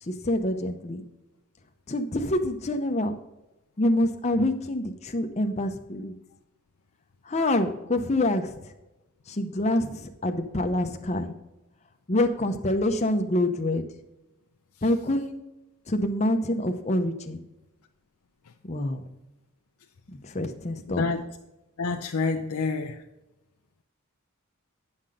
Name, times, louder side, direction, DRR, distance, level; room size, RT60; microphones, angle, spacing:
voice 1, 0.0-1.0 1.9-3.2 3.8-6.1 7.3-8.7 9.3-11.3 12.1-13.8 14.8-15.5 15.9-17.4 18.6-19.1 20.1-21.1, left 1 dB, 30° left, 5 dB, 0.7 m, -26 dB
voice 2, 20.9-21.2 21.8-23.0, left 4 dB, 85° left, 3 dB, 0.6 m, -28 dB
9.6 x 5.8 x 5.0 m, 0.95 s
head